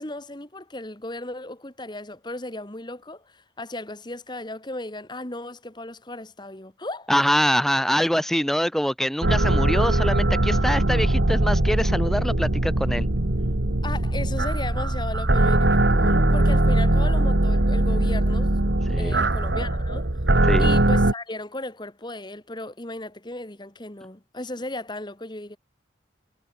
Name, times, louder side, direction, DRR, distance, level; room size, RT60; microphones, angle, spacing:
voice 1, 0.0-7.1 13.8-18.6 19.0-20.1 20.6-25.6, left 2 dB, 25° left, 1.7 m, -36 dB
voice 2, 7.1-13.1 18.9-19.2 20.5-20.7, equal, ahead, 1.4 m, -24 dB
sound 1, 9.2-21.1, right 1 dB, 65° right, 1.8 m, -21 dB
head